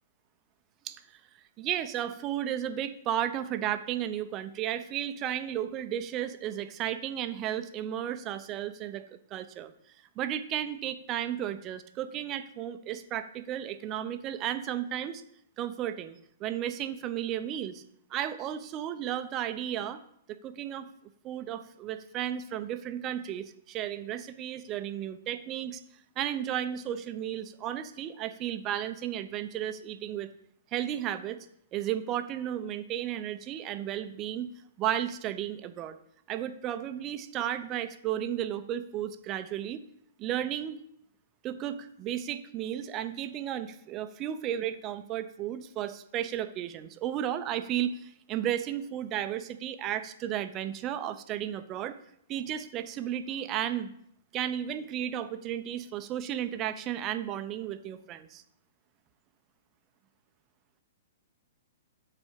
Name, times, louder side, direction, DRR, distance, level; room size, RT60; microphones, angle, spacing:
voice 1, 0.8-1.2 1.6-9.7 10.2-15.2 15.6-17.8 18.1-20.0 20.4-20.9 21.2-25.8 26.2-30.3 30.7-31.4 31.7-34.5 34.8-36.0 36.3-39.8 40.2-40.8 41.4-52.0 52.3-53.9 54.3-58.4, right 11 dB, 30° right, 10 dB, 0.6 m, -34 dB
6.1 x 4.2 x 6.4 m, 0.70 s
hypercardioid pair, 120°, 0 cm